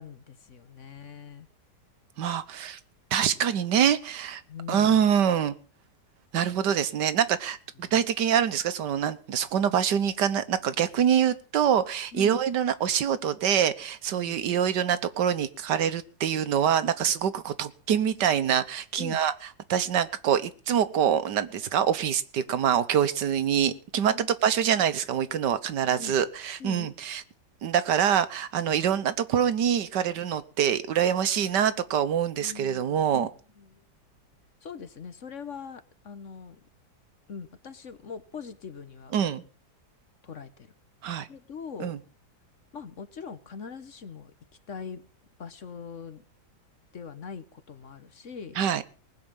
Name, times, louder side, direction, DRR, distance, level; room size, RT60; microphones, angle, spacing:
voice 1, 0.0-1.5 4.5-5.1 7.8-8.0 12.1-12.4 14.1-14.4 19.0-19.2 24.1-24.3 26.0-26.2 26.6-26.9 32.4-33.8 34.6-36.6 37.3-39.2 40.2-40.7 41.3-41.9 42.7-44.3 44.7-45.0 45.4-46.2 46.9-48.6, left 6 dB, 50° left, 12 dB, 1.3 m, -42 dB
voice 2, 2.2-2.8 3.1-4.4 4.7-5.5 6.3-19.3 19.7-27.2 27.6-33.3 39.1-39.4 41.0-41.3 41.8-42.0 48.6-48.8, right 9 dB, 85° right, 13 dB, 1.7 m, -25 dB
19.5 x 6.6 x 8.9 m, 0.40 s
omnidirectional pair, 1.8 m